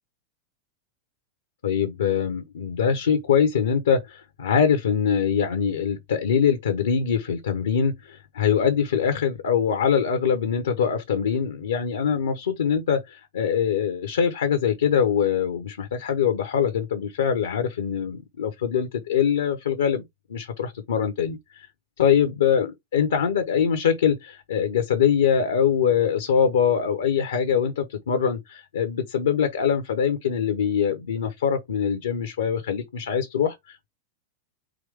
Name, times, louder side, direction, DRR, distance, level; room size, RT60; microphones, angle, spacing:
voice 1, 1.6-20.0 20.3-21.7 22.0-33.9, left 7 dB, 65° left, 0.8 m, -23 dB
5.0 x 3.0 x 3.4 m
figure-of-eight pair, 90°, 0 cm